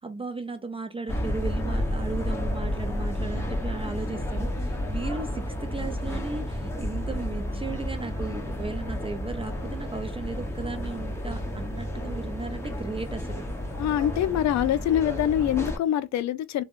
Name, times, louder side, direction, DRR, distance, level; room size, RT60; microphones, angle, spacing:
voice 1, 0.0-13.5, right 3 dB, 20° right, 0.3 m, -36 dB
sound 1, 1.1-15.8, left 1 dB, 10° left, 0.8 m, -31 dB
voice 2, 13.8-16.6, left 11 dB, 65° left, 0.4 m, -25 dB
3.4 x 2.2 x 2.4 m
cardioid pair, 90°, 30 cm